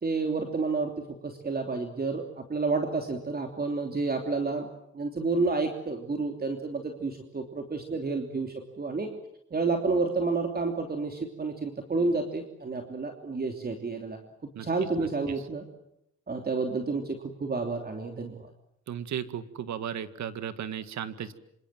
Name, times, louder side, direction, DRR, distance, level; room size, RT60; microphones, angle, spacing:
voice 1, 0.0-0.9 1.2-4.7 4.9-9.1 9.5-14.2 14.6-15.6 16.3-18.4, right 3 dB, 30° right, 4 dB, 3.1 m, -30 dB
voice 2, 18.9-21.3, right 9 dB, 65° right, 12 dB, 2.0 m, -35 dB
26.5 x 26.0 x 7.7 m, 0.79 s
cardioid pair, 90°, 30 cm